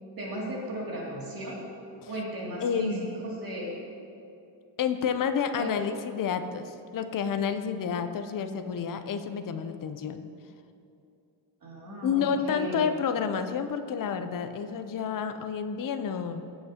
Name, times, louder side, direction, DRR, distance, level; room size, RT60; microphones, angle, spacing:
voice 1, 0.2-1.6 2.1-3.8 5.5-5.7 11.6-12.8, right 1 dB, 50° right, -4 dB, 2.5 m, -36 dB
voice 2, 2.6-3.2 4.8-10.3 12.0-16.5, left 7 dB, 45° left, 8 dB, 0.6 m, -30 dB
16.0 x 7.9 x 2.8 m, 2.6 s
wide cardioid pair, 150°, 46 cm